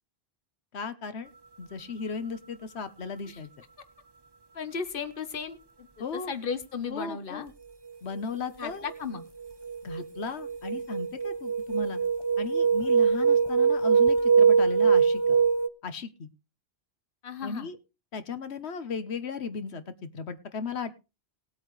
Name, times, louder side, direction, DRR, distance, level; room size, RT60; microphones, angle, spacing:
voice 1, 0.7-1.3 1.6-3.5 6.0-6.3 6.9-7.5 8.0-8.9 9.8-12.0 12.4-15.4 15.8-16.3 17.4-17.8 18.1-20.9, left 5 dB, 90° left, 11 dB, 1.4 m, -36 dB
voice 2, 4.5-7.5 8.6-9.2 17.2-17.7, left 5 dB, 55° left, 11 dB, 1.4 m, -35 dB
sound 1, 8.6-9.0 9.4-15.7, right 6 dB, 25° right, 0.8 m, -23 dB
19.5 x 8.5 x 3.2 m, 0.29 s
omnidirectional pair, 1.1 m